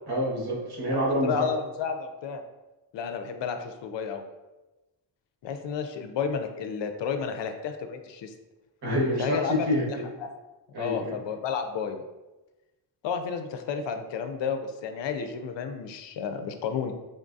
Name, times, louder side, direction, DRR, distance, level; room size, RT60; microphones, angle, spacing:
voice 1, 0.1-1.5 8.8-10.0 10.7-11.1, equal, 65° right, -4 dB, 1.5 m, -27 dB
voice 2, 1.2-2.4 2.9-4.2 5.4-8.3 9.2-9.7 10.2-10.3 10.8-12.0 13.0-16.9, left 6 dB, 85° left, 7 dB, 0.6 m, -31 dB
3.9 x 3.6 x 2.6 m, 1.1 s
wide cardioid pair, 120°, 42 cm